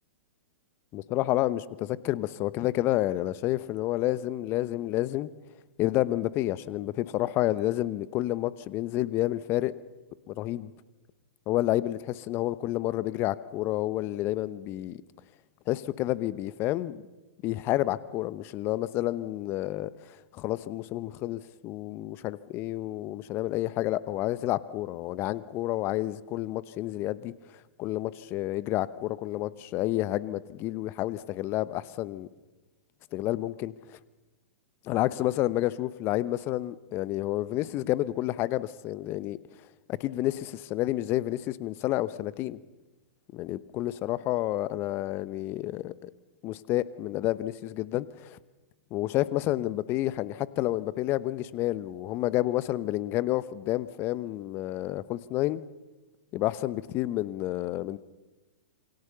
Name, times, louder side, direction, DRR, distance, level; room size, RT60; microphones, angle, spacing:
voice 1, 0.9-5.3 5.8-9.7 10.3-10.7 11.5-15.0 15.7-17.0 17.4-19.9 20.3-27.3 27.8-32.3 33.1-33.7 34.8-39.4 39.9-42.6 43.3-46.1 46.4-48.4 48.9-55.6 56.3-58.0, left 15 dB, 35° left, 18 dB, 1.0 m, -29 dB
27.5 x 23.0 x 6.9 m, 1.2 s
figure-of-eight pair, 105°, 7 cm